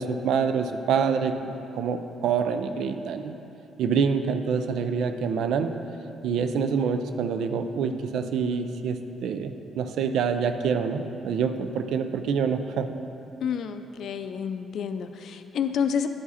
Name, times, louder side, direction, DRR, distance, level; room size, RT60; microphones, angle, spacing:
voice 1, 0.0-3.3 3.8-5.7 6.2-12.9, right 6 dB, 80° right, 9 dB, 0.4 m, -26 dB
voice 2, 13.4-16.1, left 7 dB, 70° left, 9 dB, 0.4 m, -29 dB
10.5 x 4.8 x 4.2 m, 2.8 s
cardioid pair, 90°, 0 cm